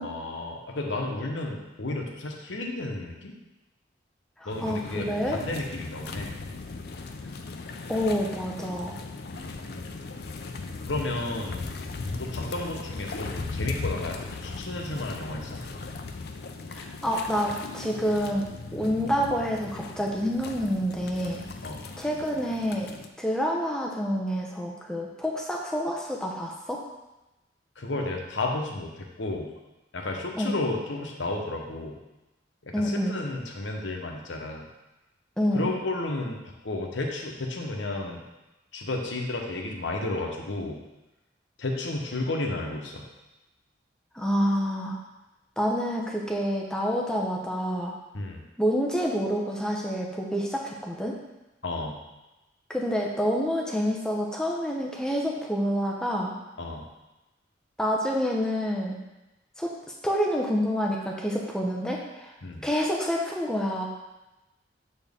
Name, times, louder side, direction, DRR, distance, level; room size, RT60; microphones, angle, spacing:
voice 1, 0.0-3.3 4.4-6.4 9.3-9.9 10.9-11.8 12.2-15.7 18.8-18.9 21.6-21.8 27.8-29.5 29.9-32.0 32.6-34.7 35.5-38.2 38.7-40.8 41.6-43.1 48.1-48.5 51.6-52.0 56.6-56.9 62.4-62.7, left 2 dB, 80° left, 1 dB, 0.9 m, -32 dB
voice 2, 4.4-5.4 7.9-9.0 16.7-21.4 22.0-22.9 23.2-26.8 30.4-30.6 32.7-33.2 35.4-35.7 44.1-45.0 45.6-47.9 48.6-51.2 52.7-56.3 57.8-59.0 59.6-59.7 60.0-62.3 62.6-63.9, equal, 5° left, -2 dB, 0.6 m, -28 dB
sound 1, 4.5-23.1, left 3 dB, 55° left, 0.4 m, -38 dB
6.8 x 4.3 x 3.5 m, 1.0 s
head